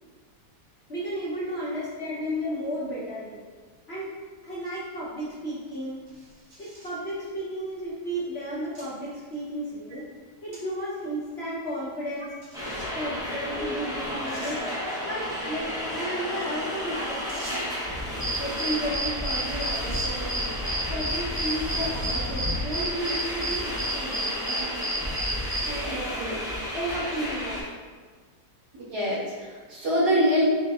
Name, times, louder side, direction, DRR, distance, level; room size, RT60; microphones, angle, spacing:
voice 1, 0.9-3.4 3.9-4.1 4.4-6.0 6.6-10.1 10.4-12.4 12.9-14.6 15.0-17.2 17.5-17.6 17.9-18.0 18.4-20.3 20.9-24.8 25.6-26.2 26.7-27.7, equal, 55° left, -7 dB, 0.7 m, -33 dB
sound 1, 6.1-7.0 7.8-7.9 8.7-8.9 9.3-9.4 10.5-10.6 11.0-11.1 12.4-13.1 13.8-13.9 14.3-14.6 17.3-17.8 19.2-19.4 19.7-20.1 20.9-21.2 21.8-22.2, right 1 dB, 55° right, 1.5 m, -46 dB
sound 2, 12.5-27.6, left 1 dB, 5° right, 0.3 m, -32 dB
sound 3, 18.2-25.7, right 1 dB, 30° left, 0.8 m, -30 dB
voice 2, 25.8-26.4 28.7-30.5, equal, 85° right, -8 dB, 2.0 m, -26 dB
7.2 x 2.5 x 2.3 m, 1.5 s
omnidirectional pair, 1.9 m